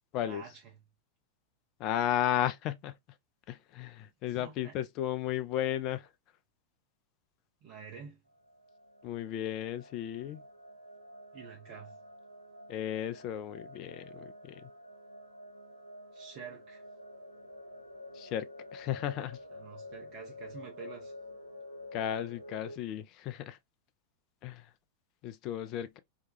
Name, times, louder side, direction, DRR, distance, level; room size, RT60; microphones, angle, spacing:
voice 1, 0.2-0.7 4.3-4.7 7.6-8.2 11.3-12.0 16.1-16.8 19.5-21.1, right 7 dB, 40° right, 0.7 m, -48 dB
voice 2, 1.8-2.9 3.5-6.1 9.0-10.4 12.7-14.7 18.1-19.4 21.9-23.6 24.4-24.7 25.2-26.0, left 11 dB, 40° left, 0.4 m, -34 dB
sound 1, 8.3-22.8, left 1 dB, 85° right, 0.6 m, -49 dB
2.9 x 2.2 x 2.5 m
figure-of-eight pair, 90°, 0 cm